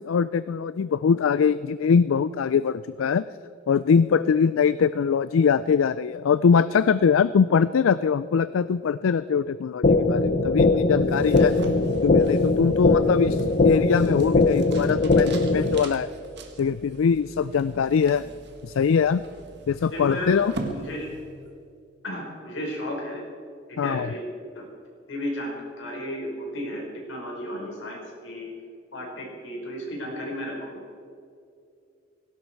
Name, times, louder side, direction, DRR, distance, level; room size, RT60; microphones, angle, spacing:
voice 1, 0.0-3.3 3.7-11.5 12.0-16.1 16.6-18.2 18.6-19.2 19.7-20.5 23.8-24.1, left 6 dB, 85° left, 16 dB, 0.4 m, -22 dB
sound 1, 9.8-15.8, left 3 dB, 45° left, 0.8 m, -21 dB
sound 2, 11.0-21.6, right 2 dB, 55° right, 1.6 m, -42 dB
voice 2, 19.9-20.3 20.7-21.1 22.0-23.2 23.7-24.3 24.6-24.7 25.1-28.5 28.9-30.8, equal, 65° left, -1 dB, 5.2 m, -33 dB
17.5 x 17.0 x 4.6 m, 2.5 s
head